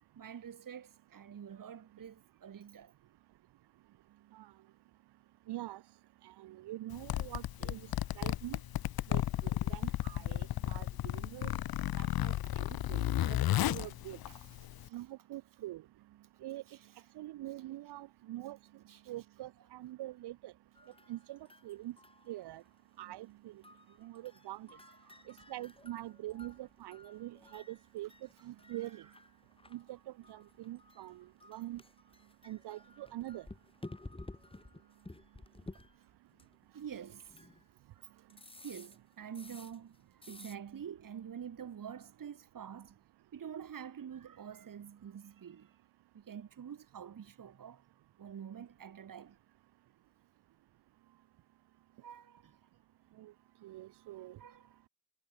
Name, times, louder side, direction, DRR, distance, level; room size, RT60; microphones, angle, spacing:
voice 1, 0.1-2.9 11.9-12.3 13.8-13.9 14.3-14.5 14.9-15.1 16.6-17.1 17.6-17.7 18.9-19.0 19.6-19.8 20.8-20.9 24.0-24.1 24.7-25.7 28.4-29.2 36.7-37.4 37.9-38.1 38.6-43.0 43.3-45.8 46.1-47.8 48.2-49.4 52.0-52.6 54.4-54.8, right 8 dB, 55° right, 1.6 m, -48 dB
voice 2, 5.5-5.8 6.2-7.8 8.2-8.6 9.1-11.5 12.0-13.0 13.3-13.4 13.6-14.2 14.9-15.8 16.4-16.6 17.2-18.6 19.1-20.5 21.1-21.4 21.6-21.9 22.3-22.6 23.0-23.5 24.0-24.7 25.3-28.1 28.4-29.0 29.7-30.0 30.3-31.8 32.4-33.4 53.2-53.3 53.6-54.4, right 15 dB, 90° right, 0.7 m, -44 dB
Zipper (clothing), 6.9-14.9, left 13 dB, 65° left, 0.6 m, -33 dB
sound 1, 20.7-22.8 23.6-37.7 38.3-40.0 40.2-40.6, left 2 dB, 15° left, 1.7 m, -54 dB
cardioid pair, 75°, 39 cm